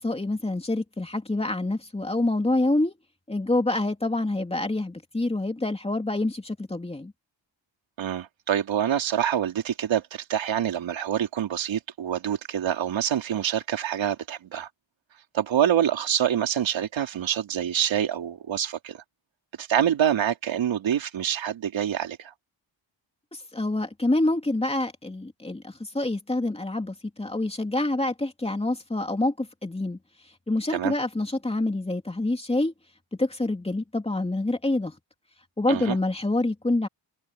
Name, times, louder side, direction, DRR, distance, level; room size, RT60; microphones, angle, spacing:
voice 1, 0.0-2.9 3.3-7.1 23.3-30.0 30.5-32.7 33.2-34.9 35.6-36.9, left 2 dB, 15° left, 2.9 m, -26 dB
voice 2, 8.0-14.7 15.3-19.0 19.6-22.3 30.7-30.9 35.7-36.0, right 9 dB, 85° right, 3.6 m, -26 dB
wide cardioid pair, 150°, 44 cm